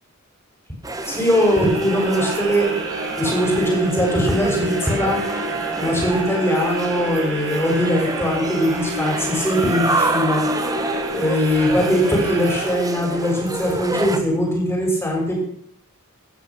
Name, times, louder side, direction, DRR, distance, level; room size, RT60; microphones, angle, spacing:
sound 1, 0.8-14.2, right 2 dB, 15° right, 1.5 m, -28 dB
sound 2, 1.0-13.3, right 1 dB, 60° right, 5.2 m, -29 dB
voice 1, 1.1-2.7 3.2-5.2 5.8-10.5 11.1-15.4, equal, 10° left, -1 dB, 6.5 m, -21 dB
17.0 x 12.5 x 6.3 m, 0.67 s
head